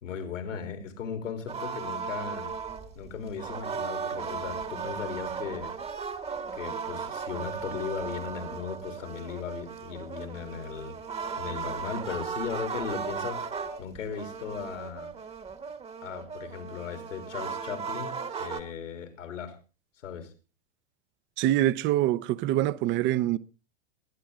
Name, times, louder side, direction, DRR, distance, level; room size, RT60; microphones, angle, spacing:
voice 1, 0.0-2.5 3.0-5.8 6.5-11.0 11.4-15.1 16.0-19.6 20.0-20.3, left 7 dB, 85° left, 3.5 m, -37 dB
sound 1, 1.5-18.6, right 5 dB, 15° right, 1.1 m, -36 dB
voice 2, 21.4-23.4, right 14 dB, 30° right, 0.6 m, -25 dB
22.0 x 10.0 x 3.7 m
hypercardioid pair, 115°, 37 cm